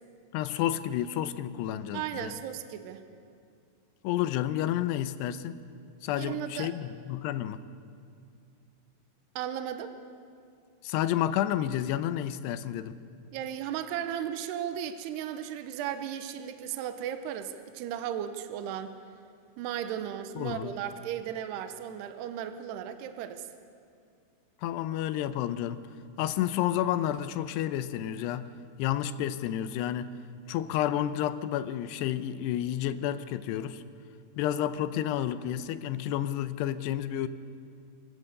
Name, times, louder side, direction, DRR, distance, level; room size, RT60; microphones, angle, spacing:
voice 1, 0.3-2.4 4.0-5.6 6.0-7.6 10.8-13.0 20.4-20.7 24.6-25.8 26.2-28.5 28.8-30.2 30.5-33.8 34.4-37.3, left 11 dB, 80° left, 12 dB, 2.8 m, -30 dB
voice 2, 1.9-3.0 6.2-6.7 9.4-10.0 13.3-18.9 19.6-23.5, right 10 dB, 80° right, 9 dB, 2.8 m, -35 dB
27.5 x 16.0 x 6.6 m, 2.4 s
omnidirectional pair, 4.9 m